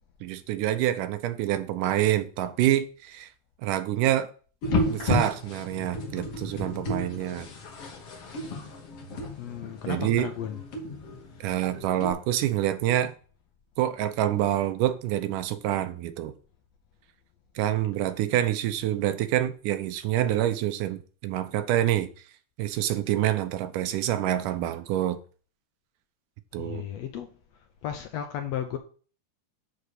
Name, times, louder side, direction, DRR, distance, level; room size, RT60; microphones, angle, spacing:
voice 1, 0.2-3.3 3.6-4.3 4.9-7.5 9.9-10.3 11.4-13.1 13.8-16.3 17.6-22.1 22.6-25.2 26.5-26.9, right 12 dB, 90° right, 2.3 m, -26 dB
sound 1, 4.6-12.1, left 2 dB, 55° left, 2.2 m, -32 dB
voice 2, 9.4-10.6 26.6-27.3 27.8-28.8, left 10 dB, 75° left, 1.6 m, -34 dB
7.8 x 3.7 x 6.6 m
omnidirectional pair, 3.6 m